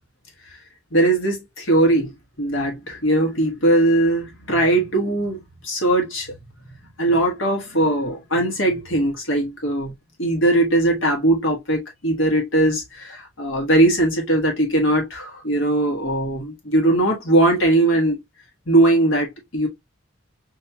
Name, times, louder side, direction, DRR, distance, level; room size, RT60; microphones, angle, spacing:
voice 1, 0.9-2.1 2.4-6.3 7.0-9.9 10.2-18.2 18.7-19.7, right 1 dB, 70° left, 1.4 m, -20 dB
5.6 x 2.9 x 2.2 m
head